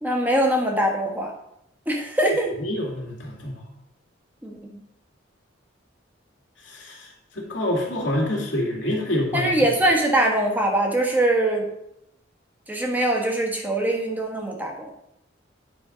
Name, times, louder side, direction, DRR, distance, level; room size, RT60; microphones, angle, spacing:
voice 1, 0.0-1.3 1.9-2.5 4.4-4.6 9.3-11.7 12.7-14.9, right 1 dB, 10° right, 0 dB, 1.4 m, -22 dB
voice 2, 2.6-3.5 6.8-7.0 7.4-9.5, left 1 dB, 80° left, 0 dB, 2.2 m, -26 dB
9.4 x 4.4 x 5.0 m, 0.78 s
head